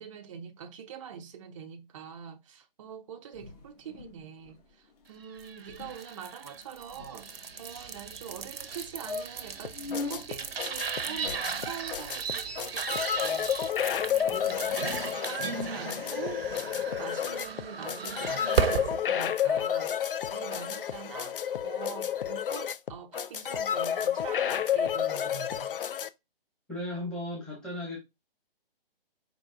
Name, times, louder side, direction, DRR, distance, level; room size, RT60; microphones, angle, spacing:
voice 1, 0.0-25.7, right 8 dB, 35° right, 0.5 m, -44 dB
sound 1, 3.3-4.2 4.4-4.6 4.9-5.1 5.4-5.5 5.7-5.9 6.5-7.6 8.3-8.4 8.7-8.8 9.0-10.2 11.1-12.1, left 3 dB, 40° left, 1.6 m, -41 dB
sound 2, 5.3-19.0, right 6 dB, 80° right, 0.7 m, -35 dB
sound 3, 9.6-26.1, left 9 dB, 65° left, 0.5 m, -31 dB
voice 2, 14.3-14.6 16.3-16.4 26.7-28.0, left 1 dB, 5° left, 1.0 m, -36 dB
4.7 x 3.9 x 2.5 m
figure-of-eight pair, 145°, 29 cm